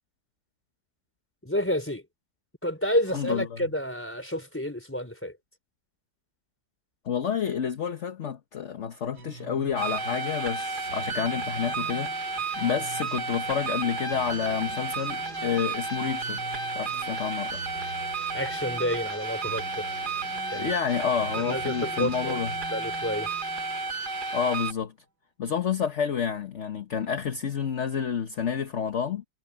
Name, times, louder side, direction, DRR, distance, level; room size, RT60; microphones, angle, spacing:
voice 1, 1.4-2.0 2.6-5.3 18.3-19.9 20.5-20.7 21.4-22.4 22.7-23.3, equal, 5° left, 4.3 m, -29 dB
voice 2, 3.1-3.6 7.0-12.1 12.6-16.5 16.7-17.6 20.5-22.5 24.3-24.9 25.4-29.2, left 7 dB, 45° left, 1.3 m, -29 dB
sound 1, 9.1-24.6, right 2 dB, 80° right, 3.5 m, -46 dB
sound 2, 9.8-24.7, right 3 dB, 30° right, 1.4 m, -32 dB
omnidirectional pair, 2.0 m